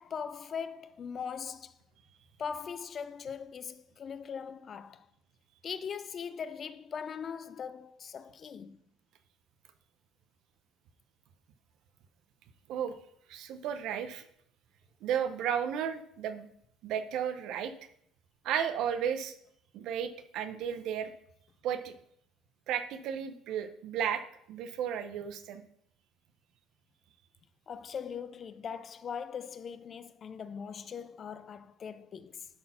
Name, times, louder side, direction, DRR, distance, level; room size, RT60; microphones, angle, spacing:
voice 1, 0.0-1.7 2.4-5.1 5.6-8.8 27.7-32.5, left 6 dB, 30° left, 0.4 m, -40 dB
voice 2, 13.3-14.2 15.0-16.5 16.8-17.7 18.4-19.3 19.7-21.1 21.6-21.9 22.7-24.2 24.5-25.6, right 8 dB, 55° right, 0.8 m, -33 dB
11.5 x 4.3 x 5.8 m
cardioid pair, 165°, 0 cm